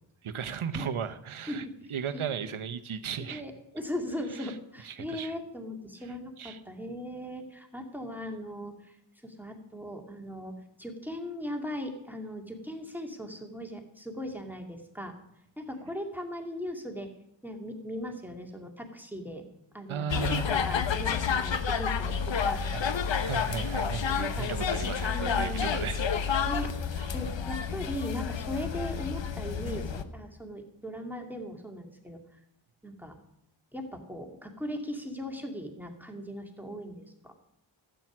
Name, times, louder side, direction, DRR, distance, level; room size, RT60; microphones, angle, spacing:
voice 1, 0.2-3.4 4.3-4.5 4.8-5.3 6.4-6.6 19.9-20.5 22.7-22.8 23.2-26.5 27.0-27.1, right 7 dB, 75° right, 10 dB, 1.0 m, -36 dB
voice 2, 3.2-9.0 9.2-15.1 15.6-17.1 17.4-19.5 19.7-23.1 24.2-24.5 25.1-25.8 26.5-26.7 27.1-32.2 32.8-33.2 33.7-37.3, equal, 5° right, 3 dB, 2.2 m, -38 dB
sound 1, 20.1-30.0, left 6 dB, 60° left, 1.0 m, -30 dB
12.0 x 9.1 x 6.0 m, 0.83 s
cardioid pair, 50°, 50 cm